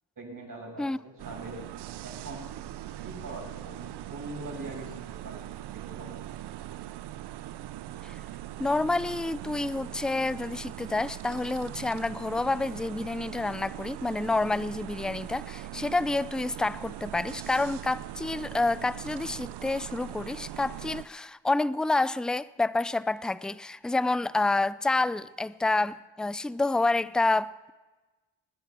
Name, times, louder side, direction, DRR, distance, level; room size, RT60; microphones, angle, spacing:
voice 1, 0.2-1.6 2.0-2.6 3.0-4.9 5.2-5.4 5.9-6.2, right 2 dB, 45° right, 6.9 m, -42 dB
sound 1, 1.2-21.0, right 13 dB, 65° right, 0.7 m, -41 dB
voice 2, 8.6-27.7, left 2 dB, ahead, 0.4 m, -28 dB
21.5 x 9.7 x 5.9 m
supercardioid pair, 50°, 44 cm